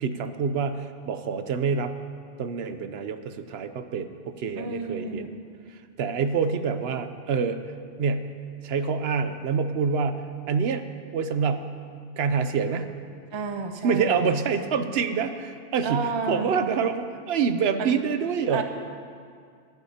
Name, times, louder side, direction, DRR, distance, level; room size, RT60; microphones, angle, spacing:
voice 1, 0.0-1.9 2.4-5.4 5.7-7.6 8.0-8.3 8.6-10.8 11.1-11.7 12.2-12.9 13.8-18.6, right 5 dB, 75° right, 9 dB, 0.8 m, -26 dB
voice 2, 4.5-5.3 13.3-14.3 15.8-16.6 17.8-18.0 18.5-18.6, right 4 dB, 35° right, 6 dB, 0.6 m, -31 dB
24.0 x 8.3 x 2.8 m, 2.2 s
omnidirectional pair, 1.1 m